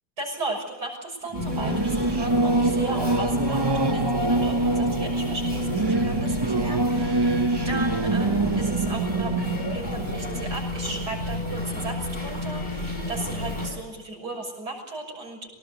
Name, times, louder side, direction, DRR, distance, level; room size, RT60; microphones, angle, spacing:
voice 1, 0.2-7.4 7.6-15.5, right 2 dB, 75° right, -1 dB, 6.9 m, -35 dB
sound 1, 1.3-13.7, left 1 dB, 25° left, 7.6 m, -31 dB
Singing / Musical instrument, 1.3-11.4, right 2 dB, 25° right, 0.6 m, -25 dB
24.5 x 19.0 x 8.2 m, 1.1 s
omnidirectional pair, 1.8 m